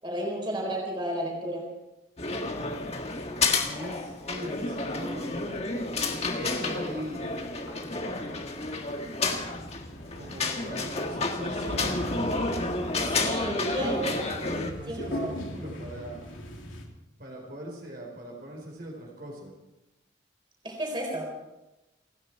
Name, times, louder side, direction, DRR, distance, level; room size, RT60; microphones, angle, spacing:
voice 1, 0.0-1.7 7.6-7.7 13.0-14.0 14.9-15.4 20.6-21.2, right 1 dB, 25° right, -1 dB, 4.1 m, -32 dB
sound 1, 2.2-14.7, left 3 dB, 35° left, 1.6 m, -30 dB
voice 2, 3.6-5.6 6.3-7.4 10.1-12.0 13.5-16.3 17.2-19.5, equal, 50° right, -1 dB, 4.3 m, -41 dB
sound 2, 5.2-16.8, equal, 85° left, 3.2 m, -40 dB
29.5 x 10.0 x 4.5 m, 1.0 s
head